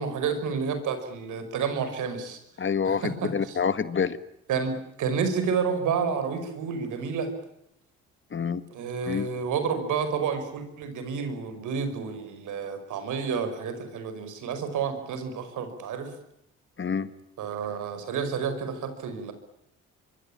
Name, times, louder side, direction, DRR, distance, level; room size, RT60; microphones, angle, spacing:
voice 1, 0.0-2.4 2.8-3.6 4.5-7.3 8.7-16.1 17.4-19.3, right 6 dB, 80° right, 9 dB, 5.5 m, -30 dB
voice 2, 2.6-3.0 3.3-4.2 8.3-8.6 9.1-9.3 16.8-17.1, left 6 dB, 40° left, 13 dB, 1.8 m, -27 dB
25.5 x 23.5 x 8.7 m, 0.79 s
cardioid pair, 90°, 30 cm